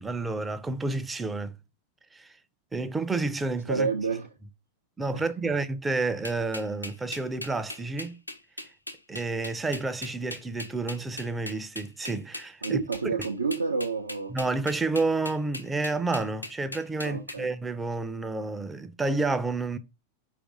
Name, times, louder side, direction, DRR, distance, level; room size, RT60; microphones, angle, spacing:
voice 1, 0.0-1.6 2.1-2.3 2.7-3.9 5.0-8.2 9.1-12.8 14.3-19.8, right 3 dB, 10° right, 0.4 m, -30 dB
voice 2, 3.7-4.3 5.1-5.5 12.6-14.3 17.0-17.5, right 5 dB, 80° right, 0.4 m, -29 dB
sound 1, 6.2-17.4, left 2 dB, 85° left, 0.5 m, -39 dB
4.6 x 2.5 x 3.8 m
figure-of-eight pair, 90°, 0 cm